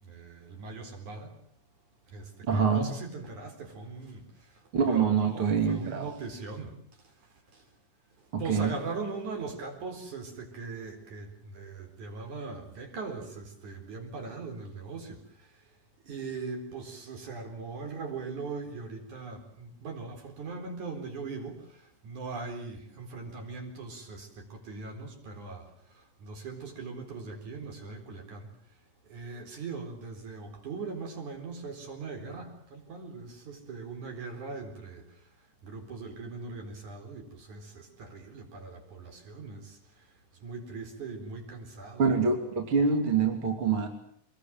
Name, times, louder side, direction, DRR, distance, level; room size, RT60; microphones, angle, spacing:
voice 1, 0.0-1.3 2.1-4.5 4.8-6.7 7.5-7.6 8.2-15.5 16.1-28.5 29.0-35.1 35.6-39.8 40.4-42.2 42.9-43.0, right 4 dB, 65° right, 3 dB, 5.6 m, -40 dB
voice 2, 2.5-2.9 4.7-6.1 8.3-8.7 42.0-43.9, right 5 dB, 40° right, 4 dB, 3.6 m, -25 dB
25.0 x 22.0 x 7.7 m, 0.66 s
omnidirectional pair, 3.7 m